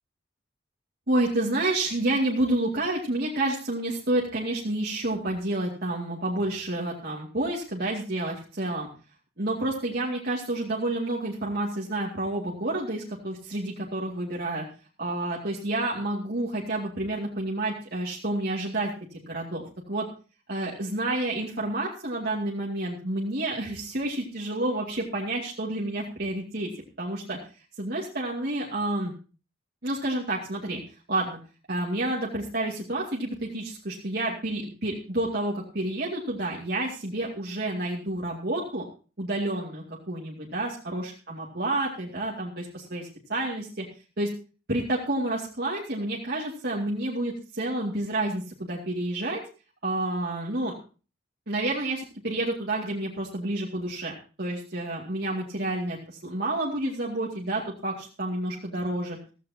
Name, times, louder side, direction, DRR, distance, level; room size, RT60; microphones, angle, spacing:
voice 1, 1.1-8.9 9.4-14.6 15.0-20.1 20.5-26.7 27.0-27.4 27.8-29.1 29.8-30.8 31.1-31.4 31.7-38.9 39.2-43.8 44.2-44.3 44.7-49.4 49.8-50.7 51.5-59.2, right 2 dB, 55° right, -3 dB, 2.4 m, -29 dB
15.5 x 15.0 x 2.8 m, 0.35 s
head